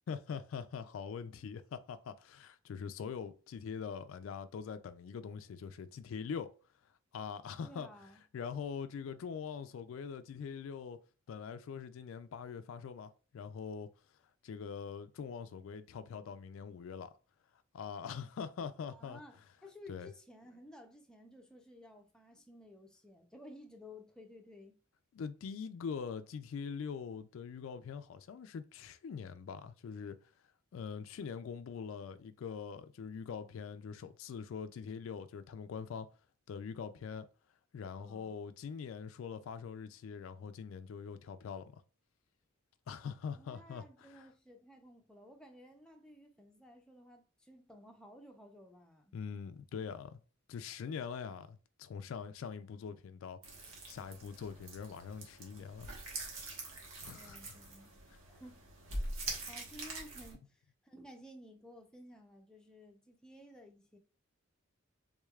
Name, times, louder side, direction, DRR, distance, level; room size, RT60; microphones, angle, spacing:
voice 1, 0.1-6.5 7.1-7.9 8.3-11.0 11.3-13.9 14.4-17.1 17.7-19.2 19.9-20.1 25.1-30.2 30.7-36.1 36.5-37.3 37.7-41.8 42.9-44.3 49.1-50.2 50.5-53.4 53.9-55.9 57.0-57.6 58.1-58.2, left 6 dB, 70° left, 0.3 m, -43 dB
voice 2, 7.6-8.2 18.9-24.8 38.0-38.4 43.3-49.2 57.1-58.0 58.3-59.0 59.4-64.0, left 1 dB, 5° left, 0.5 m, -55 dB
sound 1, 53.4-60.3, right 2 dB, 75° right, 1.1 m, -44 dB
3.5 x 3.2 x 2.3 m
head